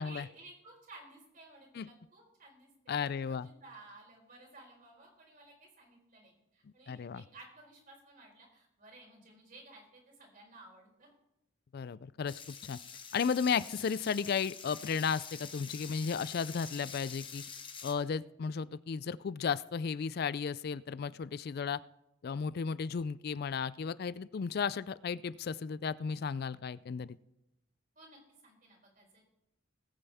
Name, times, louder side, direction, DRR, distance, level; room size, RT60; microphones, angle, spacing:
voice 1, 0.0-11.1 28.0-29.3, right 2 dB, 45° right, 0 dB, 4.2 m, -56 dB
voice 2, 2.9-3.5 6.9-7.2 11.7-12.8 13.1-17.4 17.8-21.8 22.2-27.2, left 6 dB, 50° left, 19 dB, 0.4 m, -34 dB
sound 1, 12.3-17.9, left 6 dB, 25° left, 1.2 m, -47 dB
19.0 x 8.8 x 3.5 m, 0.86 s
head